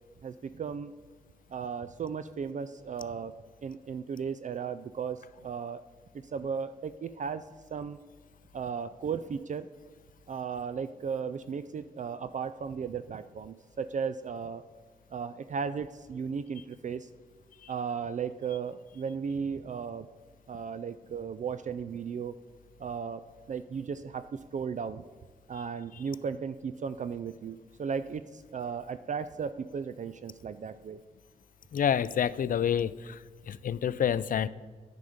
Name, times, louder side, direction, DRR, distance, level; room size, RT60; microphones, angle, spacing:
voice 1, 0.2-0.9 1.5-3.3 3.6-5.8 6.3-8.0 8.5-9.7 10.3-14.6 15.1-17.1 17.7-20.1 20.5-22.3 22.8-23.2 23.5-25.0 25.5-31.0, right 6 dB, 50° right, 12 dB, 0.4 m, -35 dB
voice 2, 31.7-33.2 33.5-34.5, left 8 dB, 55° left, 18 dB, 0.4 m, -28 dB
9.3 x 5.8 x 5.0 m, 1.5 s
cardioid pair, 50°, 16 cm